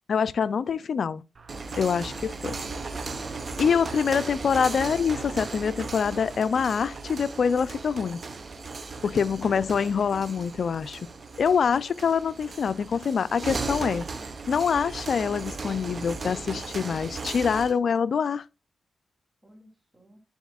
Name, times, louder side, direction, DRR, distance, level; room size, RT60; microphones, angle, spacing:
voice 1, 0.1-1.2 1.8-2.5 3.6-8.2 9.0-11.0 11.4-14.0 14.5-18.4, left 6 dB, 70° left, 0.3 m, -25 dB
sound 1, 1.3-17.8, right 4 dB, 50° right, 1.0 m, -36 dB
voice 2, 1.5-2.9 19.4-20.2, right 2 dB, 20° right, 2.3 m, -52 dB
10.5 x 4.2 x 2.3 m
cardioid pair, 65°, 0 cm